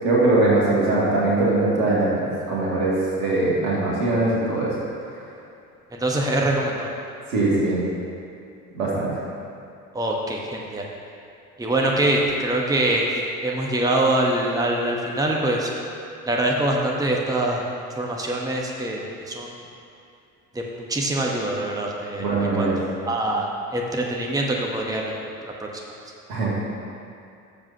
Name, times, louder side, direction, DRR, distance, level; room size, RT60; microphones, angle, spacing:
voice 1, 0.0-4.8 7.3-7.8 8.7-9.2 22.2-22.7 26.3-26.6, right 2 dB, 70° right, -6 dB, 2.4 m, -21 dB
voice 2, 5.9-6.9 9.9-10.8 11.6-13.1 13.4-15.7 16.2-17.6 18.0-19.5 20.5-22.2 22.6-22.7 23.1-25.8, right 1 dB, 10° right, -1 dB, 1.1 m, -24 dB
15.0 x 7.4 x 2.8 m, 2.5 s
figure-of-eight pair, 55°, 44 cm